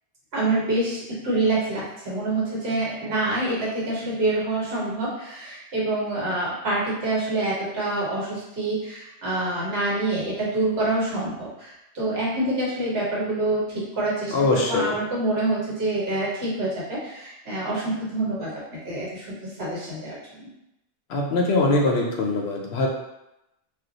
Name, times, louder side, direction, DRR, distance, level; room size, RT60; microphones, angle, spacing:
voice 1, 0.3-20.5, right 2 dB, 60° right, -6 dB, 1.3 m, -26 dB
voice 2, 14.3-14.9 21.1-22.9, left 2 dB, 70° left, 0 dB, 0.8 m, -22 dB
2.4 x 2.2 x 3.9 m, 0.88 s
omnidirectional pair, 1.2 m